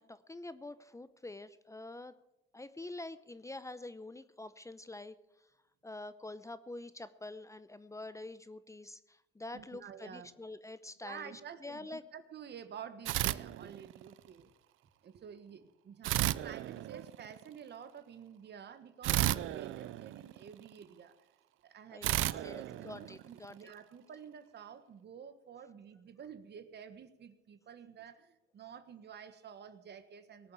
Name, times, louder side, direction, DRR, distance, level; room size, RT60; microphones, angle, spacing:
voice 1, 0.0-2.1 2.5-5.2 5.8-12.0 21.9-23.6, left 2 dB, 15° left, 14 dB, 0.7 m, -46 dB
voice 2, 9.5-10.3 11.0-14.5 15.0-21.1 21.6-30.5, right 8 dB, 60° right, 10 dB, 1.5 m, -50 dB
sound 1, 13.0-14.2 16.0-17.4 19.0-20.7 22.0-23.6, right 15 dB, 90° right, 0.5 m, -34 dB
18.5 x 7.1 x 8.6 m, 0.94 s
cardioid pair, 90°, 20 cm